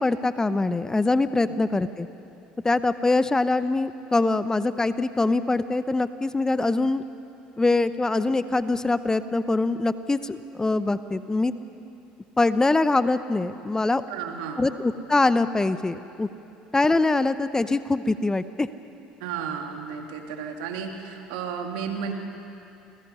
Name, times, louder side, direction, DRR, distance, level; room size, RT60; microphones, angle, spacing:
voice 1, 0.0-2.1 2.6-7.0 7.6-11.5 12.4-14.0 14.6-16.3 16.7-18.7, left 2 dB, 15° left, 13 dB, 0.8 m, -23 dB
voice 2, 14.1-14.7 19.2-22.1, right 7 dB, 75° right, 3 dB, 2.5 m, -33 dB
29.0 x 20.0 x 5.6 m, 2.7 s
hypercardioid pair, 70°, 4 cm